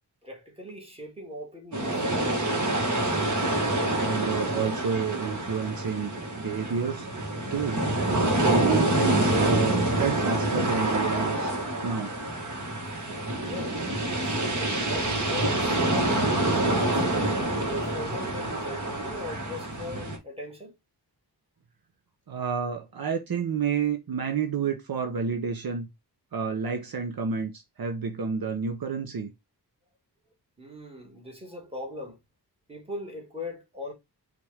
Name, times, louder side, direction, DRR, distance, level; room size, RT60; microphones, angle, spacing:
voice 1, 0.2-2.1 13.4-13.8 14.2-20.7 30.6-32.2 32.7-33.9, left 1 dB, 15° right, 1.8 m, -39 dB
sound 1, 1.7-20.2, right 1 dB, 45° right, 1.6 m, -27 dB
voice 2, 3.9-7.1 7.5-7.8 8.4-11.5 11.8-12.1 22.3-25.9 26.3-29.3, right 6 dB, 60° right, 0.8 m, -30 dB
5.8 x 2.6 x 3.3 m
wide cardioid pair, 110°, 40 cm